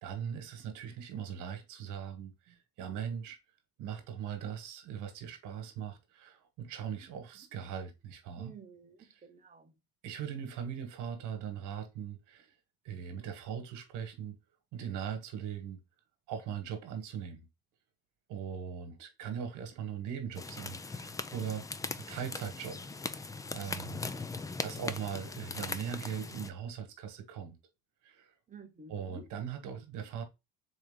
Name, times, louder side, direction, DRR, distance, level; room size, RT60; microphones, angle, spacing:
voice 1, 0.0-3.4 3.8-8.5 9.1-9.2 10.0-12.5 12.8-14.4 14.7-15.8 16.3-17.5 18.3-21.6 22.0-24.1 24.6-27.6 28.0-28.3 28.9-30.2, right 8 dB, 70° right, 1.4 m, -40 dB
voice 2, 8.4-9.7 28.5-29.2, right 4 dB, 25° right, 1.1 m, -51 dB
sound 1, 20.3-26.5, left 3 dB, 10° left, 0.3 m, -40 dB
4.1 x 3.3 x 3.7 m
supercardioid pair, 95°, 32 cm